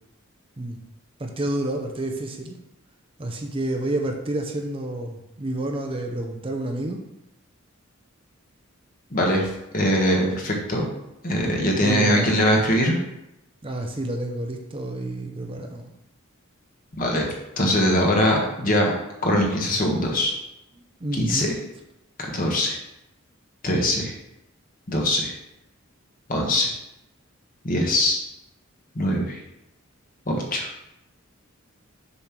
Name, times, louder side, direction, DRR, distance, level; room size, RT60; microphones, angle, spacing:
voice 1, 1.2-2.6 3.2-7.0 11.7-12.4 13.6-15.9 21.0-21.5, right 1 dB, 25° right, 3 dB, 0.6 m, -29 dB
voice 2, 9.1-9.5 9.7-10.8 11.2-13.0 17.0-17.3 17.6-18.9 19.2-20.3 21.1-21.5 22.3-22.8 23.6-24.1 24.9-25.4 26.3-26.7 27.6-28.2 28.9-29.4 30.3-30.7, equal, 40° left, 0 dB, 1.3 m, -22 dB
6.9 x 3.2 x 5.9 m, 0.88 s
head